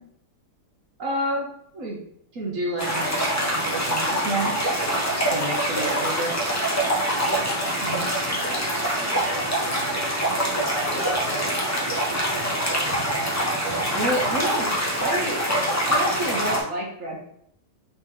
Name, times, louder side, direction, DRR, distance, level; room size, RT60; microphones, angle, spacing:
voice 1, 1.0-1.5 1.7-2.0 2.3-4.5 5.1-6.4 7.8-8.1 13.9-14.7 15.0-15.4 15.9-17.2, right 1 dB, 55° right, -2 dB, 1.1 m, -28 dB
sound 1, 2.8-16.6, right 1 dB, 25° left, 0.3 m, -25 dB
voice 2, 5.0-5.5 6.9-7.4 7.8-10.1 10.5-12.7, left 1 dB, 45° left, -5 dB, 1.4 m, -37 dB
4.3 x 2.9 x 3.6 m, 0.71 s
omnidirectional pair, 1.8 m